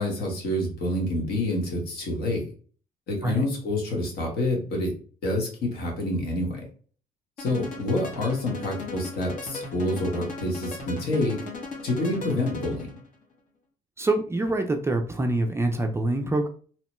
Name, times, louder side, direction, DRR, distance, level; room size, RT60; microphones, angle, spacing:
voice 1, 0.0-2.5 3.1-4.9 5.2-6.6 7.4-11.4 11.8-13.0, left 1 dB, 70° left, 0 dB, 1.2 m, -27 dB
sound 1, 7.4-13.0, left 3 dB, 50° left, 0.9 m, -37 dB
voice 2, 14.0-16.5, right 2 dB, 15° right, 4 dB, 0.4 m, -25 dB
2.9 x 2.1 x 3.0 m, 0.41 s
cardioid pair, 110°, 17 cm